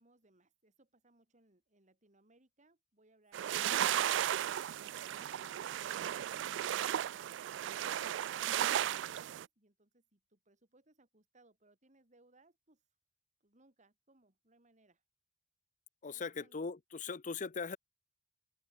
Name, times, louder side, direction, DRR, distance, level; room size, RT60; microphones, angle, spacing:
voice 1, 0.0-5.4 5.7-12.8 13.4-15.0 16.1-16.6, right 2 dB, 40° right, 3.4 m, -69 dB
sound 1, 3.3-9.5, right 11 dB, 70° right, 0.3 m, -35 dB
voice 2, 16.0-17.8, left 5 dB, 40° left, 0.7 m, -40 dB
open air
head